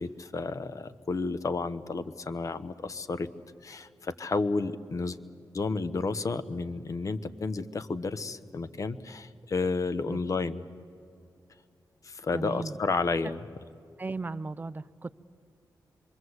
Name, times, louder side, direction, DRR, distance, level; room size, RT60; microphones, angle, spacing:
voice 1, 0.0-3.3 3.6-5.2 5.5-10.6 12.0-13.4, left 3 dB, 50° left, 12 dB, 1.0 m, -31 dB
voice 2, 12.3-12.8 14.0-15.2, right 3 dB, 25° right, 15 dB, 0.6 m, -36 dB
26.5 x 23.5 x 8.0 m, 2.4 s
wide cardioid pair, 130°, 7 cm